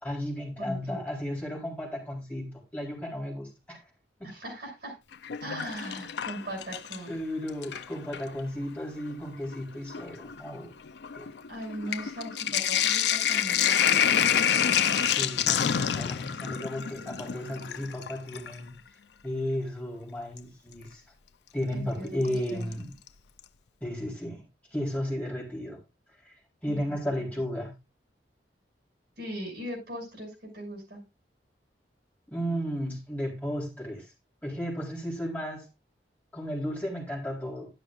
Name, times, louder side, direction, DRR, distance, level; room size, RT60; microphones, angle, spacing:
voice 1, 0.0-3.8 4.2-4.3 7.1-10.7 11.1-11.3 15.2-18.8 19.2-21.0 21.5-22.9 23.8-24.4 24.7-25.8 26.3-27.7 32.3-34.1 34.4-35.7 36.3-37.7, equal, 10° left, -3 dB, 4.0 m, -34 dB
voice 2, 0.6-1.0 4.2-5.0 5.4-7.1 11.5-14.2 21.7-22.8 26.7-26.8 27.3-27.4 29.2-31.0, equal, 60° right, 1 dB, 7.1 m, -39 dB
Sink (filling or washing), 5.1-7.1 7.5-8.3 9.1-9.2 9.5-18.6 20.4-20.5 22.3-22.7 23.1-23.2 23.4-23.5, left 9 dB, 75° left, 0.5 m, -27 dB
11.5 x 11.0 x 2.5 m, 0.25 s
head